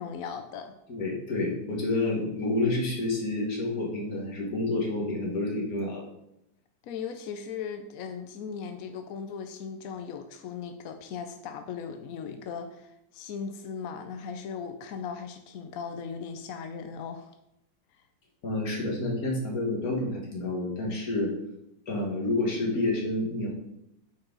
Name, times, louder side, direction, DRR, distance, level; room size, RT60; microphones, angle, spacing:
voice 1, 0.0-0.7 6.8-17.3, left 6 dB, 70° left, 7 dB, 0.8 m, -38 dB
voice 2, 0.9-6.0 18.4-21.3 21.9-23.5, left 2 dB, 50° left, -2 dB, 2.1 m, -29 dB
8.5 x 4.7 x 3.8 m, 0.83 s
omnidirectional pair, 2.0 m